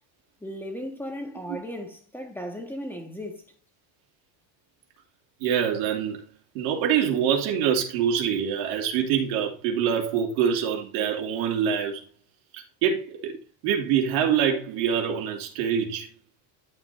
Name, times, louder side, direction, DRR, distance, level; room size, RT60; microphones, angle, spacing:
voice 1, 0.4-3.4, equal, 5° left, 1.6 m, -36 dB
voice 2, 5.4-6.2 6.5-12.0 12.5-13.4 13.6-16.1, right 8 dB, 85° right, 2.9 m, -25 dB
12.0 x 7.3 x 2.8 m
cardioid pair, 145°, 49 cm